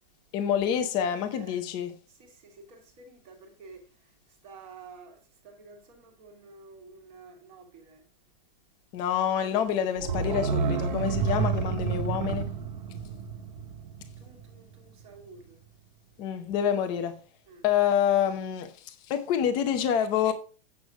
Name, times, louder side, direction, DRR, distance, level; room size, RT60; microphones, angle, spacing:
voice 1, 0.3-1.9 8.9-12.4 16.2-17.1 17.6-20.3, left 9 dB, 15° left, 0.6 m, -27 dB
voice 2, 1.3-1.6 2.1-8.0 14.2-15.6 17.5-17.6, right 4 dB, 20° right, 1.7 m, -51 dB
sound 1, 10.0-14.7 15.0-15.1, right 6 dB, 50° right, 1.3 m, -30 dB
8.3 x 6.7 x 4.7 m
supercardioid pair, 180°, 29 cm